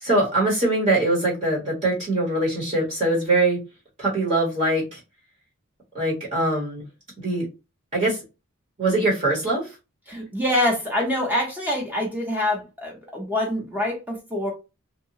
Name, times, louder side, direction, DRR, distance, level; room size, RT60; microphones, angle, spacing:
voice 1, 0.0-3.6 4.0-5.0 5.9-6.8 7.2-7.5 7.9-8.2 8.8-9.7, right 2 dB, 35° right, 1.0 m, -22 dB
voice 2, 10.1-14.5, left 1 dB, 10° right, 0.7 m, -25 dB
2.7 x 2.1 x 2.7 m
head